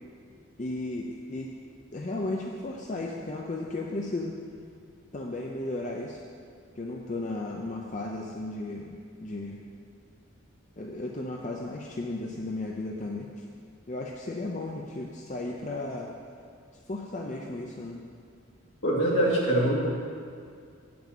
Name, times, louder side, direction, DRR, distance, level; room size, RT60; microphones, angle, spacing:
voice 1, 0.6-1.5 1.9-4.4 5.1-6.2 6.8-9.6 10.8-13.4 13.9-16.1 16.9-18.0, left 2 dB, 35° left, -1 dB, 0.6 m, -34 dB
voice 2, 18.8-19.9, right 1 dB, 70° left, -4 dB, 2.2 m, -23 dB
8.8 x 6.0 x 7.2 m, 2.3 s
head